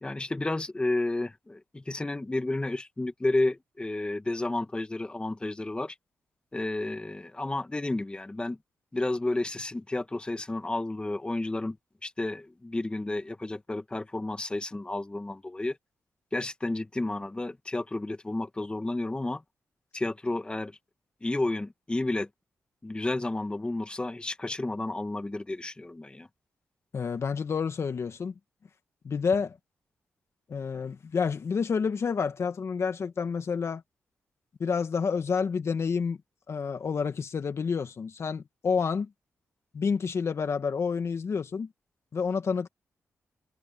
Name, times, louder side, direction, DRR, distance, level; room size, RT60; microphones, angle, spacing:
voice 1, 0.0-5.9 6.5-8.6 8.9-11.7 12.0-15.8 16.3-19.4 19.9-20.7 21.2-22.3 22.8-26.3, left 2 dB, 20° left, 1.6 m, -31 dB
voice 2, 26.9-28.3 29.0-29.6 30.5-33.8 34.6-36.2 36.5-39.1 39.7-41.7 42.1-42.7, left 5 dB, 55° left, 1.9 m, -29 dB
cardioid pair, 90°, 6 cm